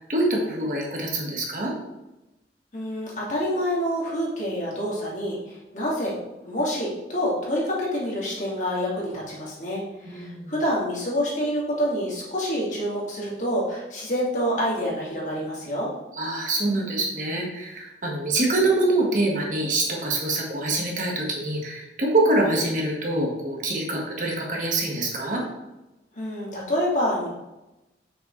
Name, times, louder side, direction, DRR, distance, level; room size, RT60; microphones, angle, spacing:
voice 1, 0.0-1.7 10.0-10.5 16.1-25.4, right 2 dB, 45° right, -2 dB, 1.6 m, -25 dB
voice 2, 2.7-6.2 6.4-15.9 26.2-27.3, equal, 45° left, -5 dB, 2.3 m, -27 dB
8.0 x 6.2 x 3.2 m, 0.98 s
head